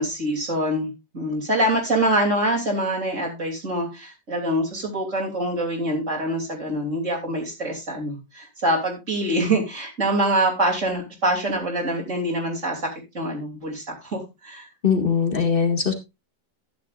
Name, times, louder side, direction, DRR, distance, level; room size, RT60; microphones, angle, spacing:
voice 1, 0.0-12.9 13.1-14.7, right 1 dB, 45° right, -1 dB, 3.5 m, -25 dB
voice 2, 14.8-15.9, left 6 dB, 30° left, 6 dB, 2.1 m, -21 dB
12.5 x 10.5 x 2.5 m, 0.24 s
omnidirectional pair, 1.8 m